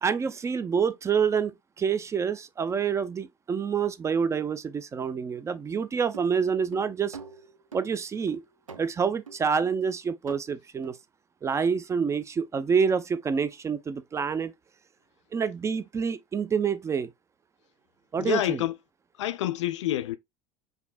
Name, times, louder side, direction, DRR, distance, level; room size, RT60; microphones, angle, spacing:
voice 1, 0.0-7.2 7.7-8.4 8.8-11.0 11.4-14.5 15.3-17.1 18.1-18.6, right 6 dB, 15° right, 0.4 m, -27 dB
sound 1, 6.1-7.9 8.3-8.9 9.3-9.5 9.9-10.0 10.3-10.4 10.8-10.9, right 5 dB, 80° right, 0.5 m, -45 dB
voice 2, 18.2-18.7 19.2-20.2, left 13 dB, 65° left, 0.4 m, -27 dB
5.1 x 2.6 x 2.3 m
figure-of-eight pair, 75°, 17 cm